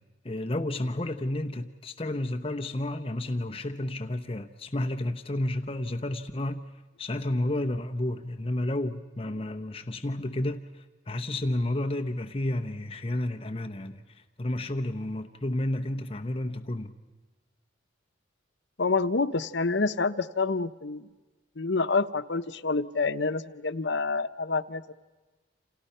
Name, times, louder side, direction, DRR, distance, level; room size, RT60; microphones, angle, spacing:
voice 1, 0.2-6.6 7.0-16.9, left 1 dB, 30° left, 0.8 m, -31 dB
voice 2, 18.8-21.1 21.6-24.9, left 4 dB, 70° left, 0.9 m, -27 dB
29.5 x 28.0 x 5.6 m
head